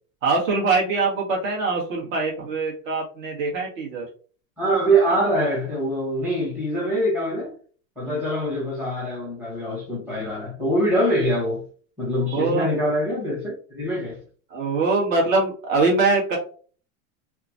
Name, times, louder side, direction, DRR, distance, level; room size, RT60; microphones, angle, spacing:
voice 1, 0.2-4.1 8.0-8.2 12.3-12.7 14.5-16.4, right 3 dB, 70° right, 1.5 m, -23 dB
voice 2, 4.6-7.5 8.0-11.6 12.0-14.2, right 1 dB, 5° right, 0.6 m, -24 dB
2.9 x 2.4 x 2.5 m
supercardioid pair, 170°, 41 cm